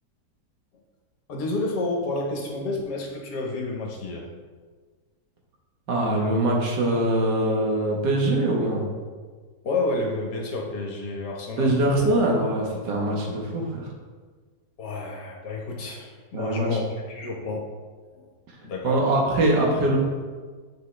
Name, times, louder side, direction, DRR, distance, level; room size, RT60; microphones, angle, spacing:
voice 1, 1.3-4.3 9.6-12.0 14.8-17.7 18.6-19.0, left 2 dB, 70° left, 0 dB, 1.7 m, -30 dB
voice 2, 5.9-8.9 11.6-13.9 16.3-16.8 18.8-20.0, right 1 dB, 75° right, -1 dB, 2.0 m, -23 dB
7.6 x 5.9 x 3.3 m, 1.5 s
omnidirectional pair, 1.9 m